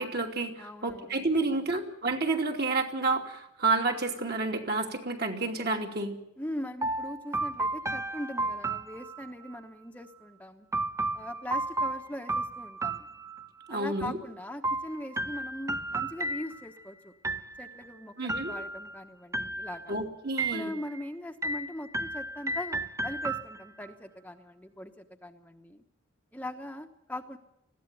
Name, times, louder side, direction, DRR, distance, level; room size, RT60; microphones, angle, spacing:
voice 1, 0.0-6.2 13.7-14.2 18.2-18.5 19.9-20.7, right 3 dB, 50° right, 2 dB, 2.8 m, -30 dB
voice 2, 0.6-1.7 6.4-10.7 11.1-13.1 13.7-17.1 17.6-19.9 20.5-25.8 26.3-27.4, left 1 dB, 10° left, 4 dB, 1.0 m, -41 dB
sound 1, 6.8-9.6 10.7-13.7 14.6-16.8 17.2-17.9 18.3-19.0 19.3-20.0 20.4-21.0 21.4-23.9, right 2 dB, 15° right, 0.8 m, -33 dB
20.5 x 15.5 x 9.1 m, 0.82 s
head